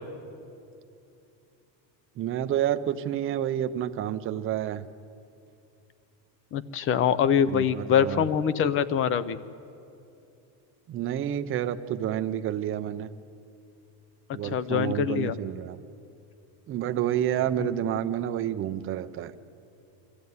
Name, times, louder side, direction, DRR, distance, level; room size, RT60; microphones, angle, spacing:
voice 1, 2.2-4.9 7.5-8.2 10.9-13.1 14.3-15.8 16.7-19.3, right 11 dB, 25° right, 10 dB, 0.5 m, -29 dB
voice 2, 6.5-9.4 14.4-15.4 17.6-17.7, left 8 dB, 25° left, 17 dB, 0.5 m, -24 dB
23.5 x 14.0 x 9.5 m, 2.7 s
cardioid pair, 155°, 50 cm